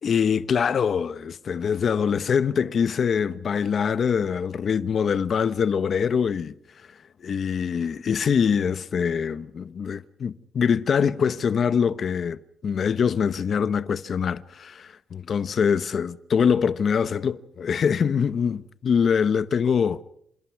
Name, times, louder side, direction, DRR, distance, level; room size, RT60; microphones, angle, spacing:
voice 1, 0.0-6.5 7.2-20.0, left 6 dB, 45° left, 1.0 m, -24 dB
28.0 x 27.0 x 4.7 m
wide cardioid pair, 155°, 0 cm